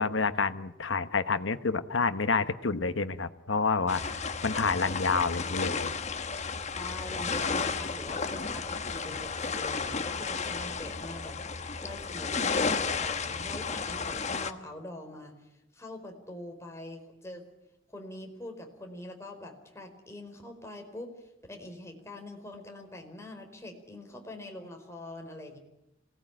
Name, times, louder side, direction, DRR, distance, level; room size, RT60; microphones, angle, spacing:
voice 1, 0.0-4.0 4.4-5.9, left 4 dB, 80° left, 11 dB, 1.2 m, -28 dB
sound 1, 3.9-14.5, left 4 dB, 40° left, 1.3 m, -33 dB
voice 2, 6.7-17.4 17.9-25.6, left 1 dB, 15° left, 3 dB, 4.6 m, -44 dB
27.0 x 18.5 x 9.1 m, 0.90 s
head